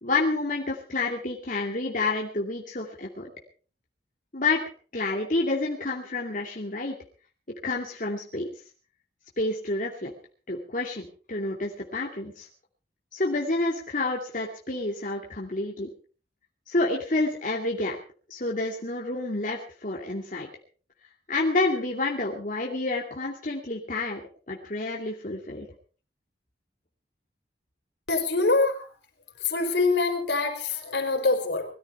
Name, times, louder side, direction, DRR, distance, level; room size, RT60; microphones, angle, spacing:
voice 1, 0.0-3.3 4.3-4.6 4.9-6.9 7.6-8.5 9.4-10.1 10.5-12.5 13.1-15.9 16.7-18.0 18.3-20.5 21.3-24.2 24.5-25.7, left 2 dB, 45° left, -2 dB, 2.6 m, -29 dB
voice 2, 28.1-28.8 29.4-31.7, left 3 dB, 80° left, 3 dB, 4.7 m, -24 dB
21.5 x 13.5 x 4.4 m, 0.38 s
head